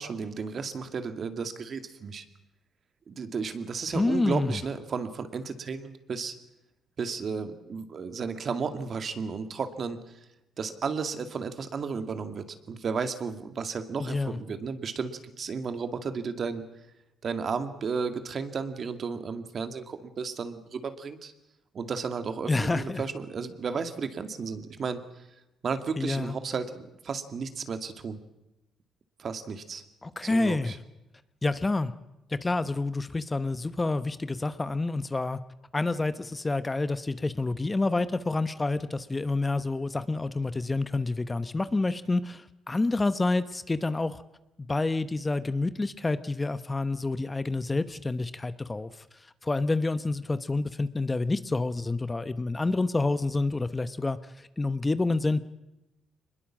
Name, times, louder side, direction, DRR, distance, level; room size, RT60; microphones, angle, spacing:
voice 1, 0.0-2.2 3.1-6.3 7.0-10.2 10.6-16.6 17.2-21.3 21.7-25.3 25.6-28.2 29.2-29.8 30.2-30.8, right 5 dB, 50° right, 8 dB, 2.2 m, -33 dB
voice 2, 3.9-4.6 14.0-14.4 22.5-23.0 26.0-26.3 30.0-30.7 31.4-31.9 32.3-35.4 35.7-44.2 44.6-48.9 49.4-55.4, left 3 dB, 20° left, 12 dB, 1.0 m, -28 dB
24.0 x 21.0 x 7.5 m, 0.93 s
cardioid pair, 90°, 0 cm